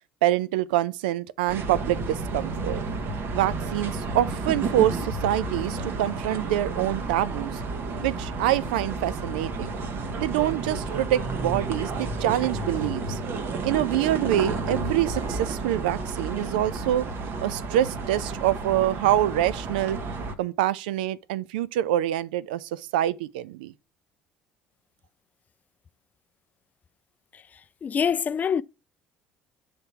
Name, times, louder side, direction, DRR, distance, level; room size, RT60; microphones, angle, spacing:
voice 1, 0.2-2.8 3.3-7.6 8.0-9.8 10.2-13.2 13.6-17.1 17.4-20.0 20.4-23.7, right 13 dB, 70° right, 0.3 m, -26 dB
sound 1, 1.5-20.3, right 3 dB, 50° right, 1.0 m, -31 dB
voice 2, 27.3-28.6, left 7 dB, 35° left, 0.3 m, -26 dB
6.5 x 3.6 x 5.6 m
figure-of-eight pair, 55°, 5 cm